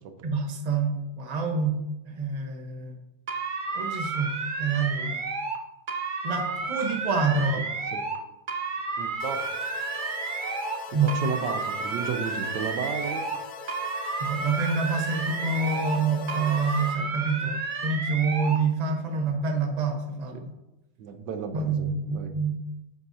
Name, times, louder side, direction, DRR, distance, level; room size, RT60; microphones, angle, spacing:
voice 1, 0.2-1.8 2.0-2.9 3.7-4.3 4.6-5.2 6.2-7.6 10.9-11.1 14.2-20.5 21.5-22.6, right 4 dB, 30° right, 2 dB, 1.0 m, -27 dB
sound 1, 3.3-5.6 5.9-8.2 8.5-10.8 11.1-13.4 13.7-16.0 16.3-18.6, right 4 dB, 55° right, 0.5 m, -31 dB
voice 2, 9.0-9.5 11.1-13.3 20.3-20.4 21.0-22.3, right 6 dB, 85° right, 8 dB, 1.4 m, -33 dB
sound 2, 9.2-17.0, left 5 dB, 70° left, 1.3 m, -41 dB
9.4 x 8.0 x 2.8 m, 0.95 s
omnidirectional pair, 1.9 m